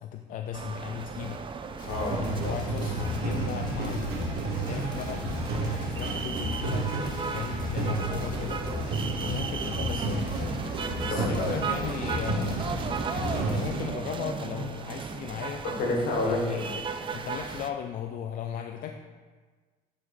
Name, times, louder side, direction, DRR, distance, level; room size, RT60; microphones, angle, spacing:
voice 1, 0.0-1.4 2.2-6.9 7.3-8.6 9.2-10.3 11.1-12.6 13.1-15.6 16.2-18.9, left 8 dB, 55° left, 5 dB, 0.4 m, -36 dB
sound 1, 0.5-17.7, right 5 dB, 30° right, 0.4 m, -36 dB
voice 2, 1.8-2.5 11.1-11.7 15.6-16.7, left 2 dB, 70° left, -1 dB, 1.7 m, -30 dB
sound 2, 1.8-13.7, left 3 dB, 25° left, 1.3 m, -41 dB
sound 3, 1.9-13.8, right 2 dB, 70° right, 1.3 m, -32 dB
9.6 x 4.9 x 2.6 m, 1.4 s
cardioid pair, 110°, 17 cm